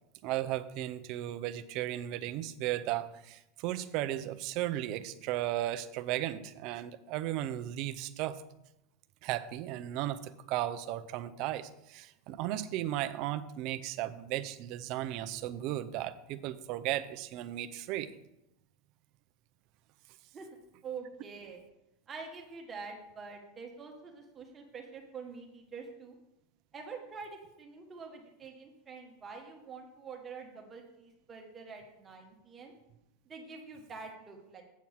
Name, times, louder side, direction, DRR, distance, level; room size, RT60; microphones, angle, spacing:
voice 1, 0.2-8.4 9.2-18.1, right 13 dB, 35° right, 11 dB, 0.4 m, -35 dB
voice 2, 20.8-21.6 22.1-26.2 26.7-32.7 33.2-34.6, right 5 dB, 15° right, 1 dB, 1.2 m, -46 dB
8.2 x 4.5 x 7.2 m, 0.88 s
supercardioid pair, 180°, 0 cm